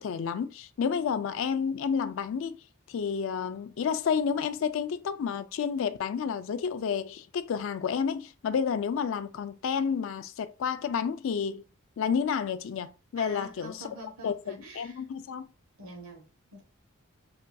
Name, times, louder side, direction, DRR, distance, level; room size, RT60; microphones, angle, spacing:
voice 1, 0.0-2.6 2.9-11.6 12.0-15.5, left 6 dB, 60° left, 0.3 m, -30 dB
voice 2, 13.2-15.0 15.8-16.2 16.5-16.6, right 1 dB, 85° right, 1.1 m, -45 dB
5.4 x 2.6 x 2.3 m
head